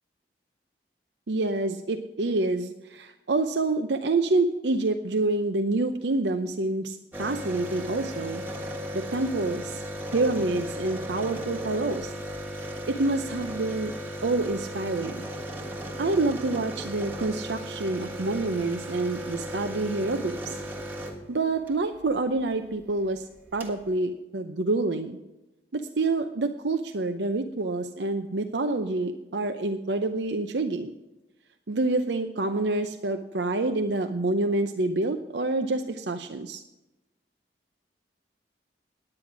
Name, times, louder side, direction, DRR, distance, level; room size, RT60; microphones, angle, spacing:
voice 1, 1.3-8.4 8.9-9.8 10.1-12.1 12.9-13.9 14.2-15.3 16.0-20.6 21.3-23.2 23.5-25.2 25.7-30.9 31.7-36.6, right 2 dB, 80° right, 7 dB, 0.7 m, -27 dB
sound 1, 7.1-21.8 23.1-23.2 23.3-23.8, equal, 10° right, 1.5 m, -36 dB
9.9 x 9.7 x 6.0 m, 1.0 s
head